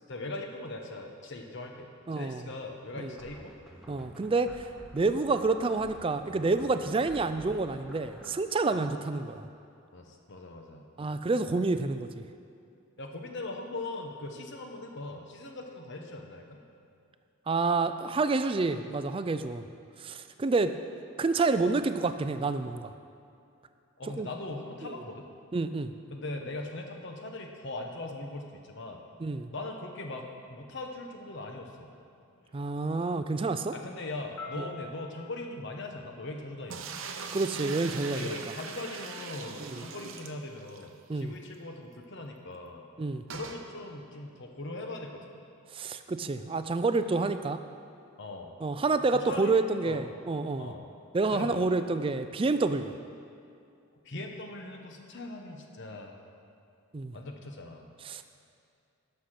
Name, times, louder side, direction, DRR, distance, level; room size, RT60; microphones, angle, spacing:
voice 1, 0.1-3.6 6.8-6.9 8.7-8.9 9.9-10.9 13.0-16.6 21.6-21.7 24.0-25.3 26.1-29.0 29.5-31.9 33.3-33.4 33.7-37.0 38.1-42.8 43.3-45.4 48.2-48.5 49.1-49.6 49.8-50.0 50.6-50.8 51.3-51.7 54.0-56.1 57.1-57.9, left 2 dB, 55° left, 3 dB, 1.0 m, -40 dB
voice 2, 2.1-2.5 3.0-3.1 3.9-4.7 4.9-9.4 11.0-12.2 17.5-19.6 20.0-20.8 21.2-22.9 24.2-24.3 24.8-24.9 25.5-25.9 29.2-29.5 32.5-33.7 34.6-34.7 37.3-38.3 39.6-39.8 41.1-41.3 43.0-43.2 45.7-47.6 48.6-50.7 51.1-52.9 56.9-57.1 58.0-58.2, right 3 dB, 25° right, 10 dB, 0.3 m, -28 dB
sound 1, 3.2-8.4, equal, ahead, 0.9 m, -50 dB
sound 2, 30.3-34.9, left 3 dB, 80° left, 1.4 m, -49 dB
sound 3, 36.7-40.9 41.2-41.3 41.5-41.6 43.3-43.6, right 5 dB, 70° right, 0.7 m, -40 dB
11.5 x 6.5 x 5.9 m, 2.5 s
head